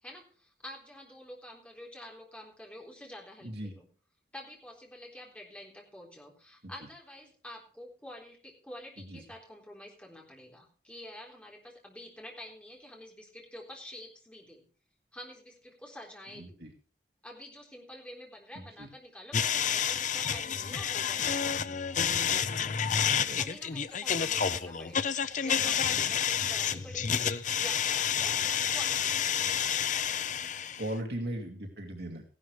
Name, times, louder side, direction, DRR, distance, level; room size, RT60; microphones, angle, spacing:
voice 1, 0.0-3.9 4.3-14.6 15.1-16.6 17.2-21.6 23.4-28.4 28.7-29.9, left 1 dB, 5° left, -1 dB, 3.8 m, -48 dB
voice 2, 3.4-3.7 6.6-6.7 9.0-9.2 16.3-16.7 18.5-18.9 23.2-23.8 26.4-26.5 30.8-32.2, right 1 dB, 65° right, 2 dB, 2.4 m, -39 dB
sound 1, 19.3-30.9, left 8 dB, 45° left, 0.6 m, -29 dB
16.0 x 11.5 x 3.3 m, 0.39 s
head